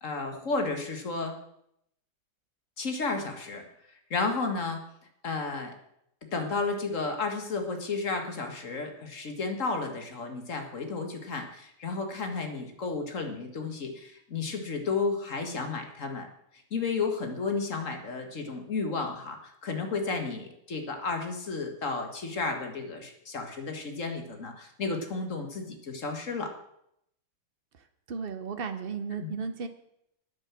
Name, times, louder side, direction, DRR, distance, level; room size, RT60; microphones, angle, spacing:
voice 1, 0.0-1.3 2.8-3.6 4.1-4.8 5.2-5.7 6.3-16.3 16.7-26.5 29.2-29.3, left 4 dB, 40° left, 5 dB, 1.9 m, -32 dB
voice 2, 28.1-29.7, right 5 dB, 75° right, 8 dB, 0.5 m, -34 dB
9.8 x 9.4 x 7.4 m, 0.76 s
omnidirectional pair, 2.3 m